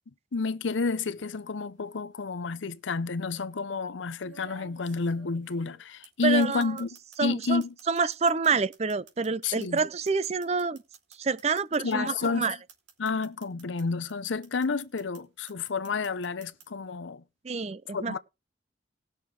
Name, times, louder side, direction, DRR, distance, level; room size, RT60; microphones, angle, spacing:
voice 1, 0.3-6.9 7.2-7.7 9.4-9.8 11.8-12.5 13.0-17.2 17.9-18.2, left 4 dB, 85° left, 0.7 m, -30 dB
sound 1, 1.0-1.4 2.6-2.7 4.2-7.2 7.4-13.8 14.1-15.2 15.5-16.6, right 5 dB, 70° right, 2.9 m, -52 dB
voice 2, 6.2-6.7 7.2-10.8 11.2-12.6 17.4-18.2, right 4 dB, 35° right, 0.5 m, -27 dB
19.0 x 6.5 x 3.3 m
head